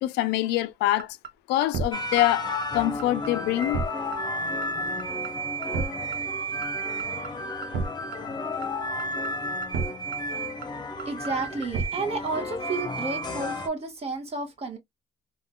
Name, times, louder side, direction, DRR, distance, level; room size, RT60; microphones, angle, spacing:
voice 1, 0.0-1.2 1.5-2.5 2.7-3.8, left 14 dB, 85° left, 0.4 m, -25 dB
sound 1, 0.6-0.7 1.0-1.3 1.6-1.8 2.1-2.2 2.6-2.7 3.0-3.3 3.6-3.9 4.1-4.2 4.6-4.7 5.0-5.3 5.6-5.9 6.1-6.2 6.6-6.7 7.0-7.3 7.6-7.9 8.1-8.2 8.6-8.7 9.0-9.3 9.6-9.9 10.1-10.2 10.6-10.7 11.0-11.3 11.6-11.9, right 5 dB, 65° right, 0.7 m, -31 dB
sound 2, 1.9-13.7, equal, 25° left, 0.9 m, -32 dB
voice 2, 11.0-14.8, right 3 dB, 35° right, 1.2 m, -31 dB
3.6 x 2.4 x 2.2 m
cardioid pair, 110°, 17 cm